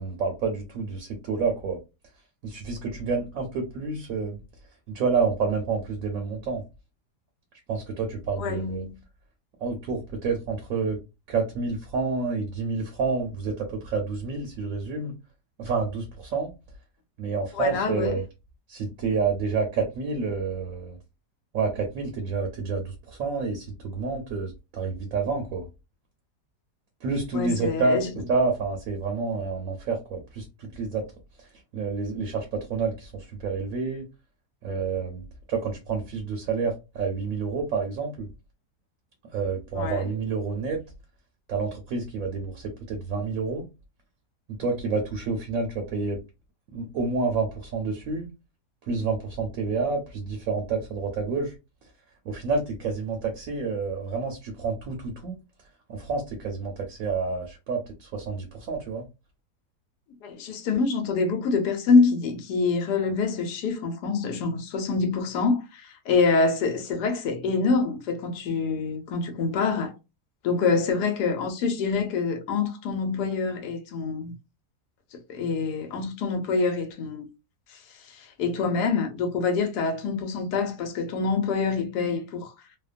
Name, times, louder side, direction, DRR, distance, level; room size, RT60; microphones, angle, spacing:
voice 1, 0.0-1.8 2.4-4.4 4.9-6.6 7.7-8.8 9.6-11.0 11.3-15.1 15.6-16.5 17.2-18.2 18.7-21.0 21.5-25.7 27.0-31.0 31.4-31.5 31.7-34.1 34.6-38.3 39.3-40.8 41.5-43.6 44.5-46.2 46.7-48.3 48.9-51.5 52.2-55.3 55.9-59.0, right 4 dB, 65° right, 0.9 m, -29 dB
voice 2, 8.4-9.0 17.5-18.2 27.3-28.1 39.7-40.1 60.2-69.9 70.4-74.3 75.1-77.3 77.7-82.5, left 4 dB, 80° left, 1.2 m, -26 dB
2.9 x 2.1 x 2.4 m
omnidirectional pair, 1.7 m